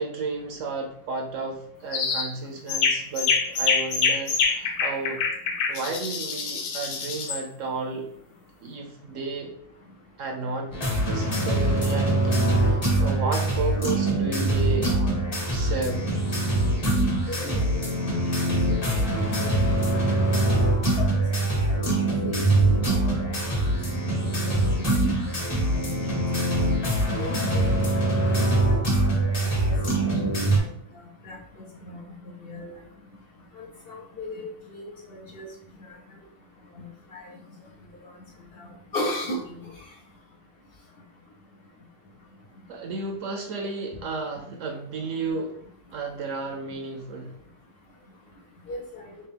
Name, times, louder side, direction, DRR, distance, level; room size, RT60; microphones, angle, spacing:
voice 1, 0.0-5.2 5.7-8.1 8.6-9.5 10.2-10.7 11.1-15.0 15.5-16.1 42.7-45.6 45.9-47.4, right 3 dB, 65° right, 2 dB, 0.9 m, -32 dB
sound 1, 1.9-2.3 2.7-7.4, left 5 dB, 85° left, 1.1 m, -25 dB
sound 2, 10.7-30.6, right 1 dB, 30° left, 0.8 m, -23 dB
voice 2, 17.3-17.9 18.7-19.0 19.4-19.5 19.8-20.0 20.3-20.4 22.3-22.5 23.4-23.5 24.1-24.8 25.2-25.4 25.8-25.9 27.2-27.8 28.7-29.1 29.4-29.7 31.2-31.4 31.8-32.0 32.4-32.7 33.6-35.5 37.1-37.2 38.9-39.4 48.7-49.0, left 1 dB, 65° left, -1 dB, 0.5 m, -36 dB
3.5 x 2.7 x 3.3 m, 0.66 s
omnidirectional pair, 1.6 m